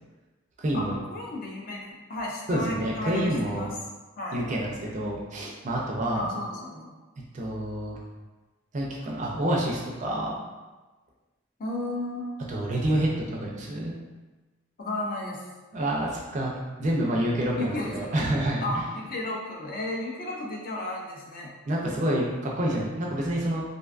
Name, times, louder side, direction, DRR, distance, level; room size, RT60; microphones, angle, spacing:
voice 1, 0.6-1.0 2.5-3.7 4.3-6.3 7.3-8.0 8.7-10.4 12.5-13.9 15.7-16.5 16.8-18.8 21.7-23.6, right 1 dB, 35° right, -2 dB, 0.4 m, -28 dB
voice 2, 1.1-3.7 4.2-4.4 6.1-6.9 11.6-12.3 14.8-15.4 17.6-17.9 18.6-21.5, left 1 dB, 45° left, -1 dB, 0.4 m, -33 dB
2.5 x 2.2 x 2.4 m, 1.2 s
head